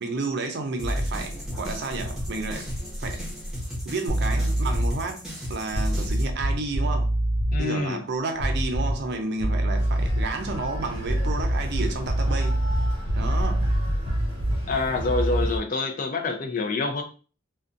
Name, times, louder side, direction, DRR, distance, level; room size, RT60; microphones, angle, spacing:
voice 1, 0.0-2.7 3.0-3.2 3.8-7.1 7.6-12.6 13.2-13.6, right 3 dB, 60° right, 0.5 m, -31 dB
sound 1, 0.8-6.3, equal, 5° right, 0.8 m, -33 dB
sound 2, 4.1-5.0 5.7-7.6 8.4-9.1 9.4-10.4 11.0-14.7, right 1 dB, 85° left, 0.6 m, -25 dB
voice 2, 7.5-8.0 14.7-17.0, left 3 dB, 45° left, 0.4 m, -26 dB
sound 3, 9.7-15.6, equal, 30° right, 0.8 m, -32 dB
2.5 x 2.2 x 2.5 m
head